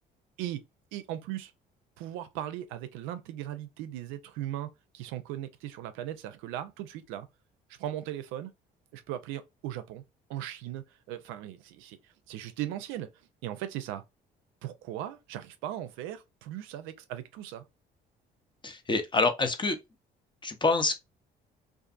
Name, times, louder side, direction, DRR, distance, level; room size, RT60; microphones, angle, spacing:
voice 1, 0.9-1.5 2.0-7.3 7.8-8.5 8.9-10.0 10.3-13.1 13.4-14.0 14.6-17.6, right 12 dB, 80° right, 0.4 m, -38 dB
voice 2, 18.6-19.8 20.4-21.0, left 3 dB, 25° left, 0.6 m, -26 dB
2.5 x 2.4 x 2.4 m
supercardioid pair, 60°, 20 cm